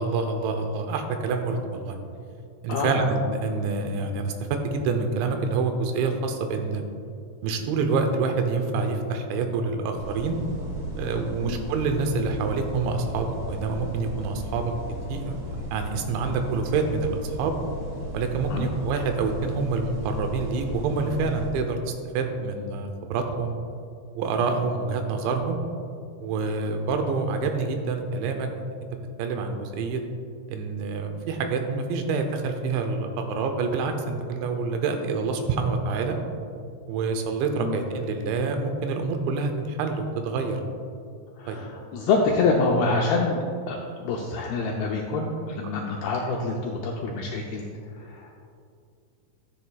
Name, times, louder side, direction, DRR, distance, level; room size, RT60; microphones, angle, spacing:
voice 1, 0.0-2.0 2.6-6.8 7.4-10.4 11.0-14.7 15.1-15.4 15.7-17.5 18.1-23.6 24.2-25.6 26.2-28.5 29.2-30.0 30.5-36.2 36.9-40.6 41.5-41.6, right 4 dB, 90° right, 5 dB, 3.1 m, -27 dB
voice 2, 2.7-3.0 11.4-11.6 18.5-18.7 37.6-37.8 41.4-47.7 47.9-48.3, left 3 dB, 85° left, 0 dB, 2.2 m, -26 dB
sound 1, 9.9-21.5, right 1 dB, 65° right, 3.5 m, -35 dB
13.0 x 7.9 x 2.3 m, 2.4 s
omnidirectional pair, 5.1 m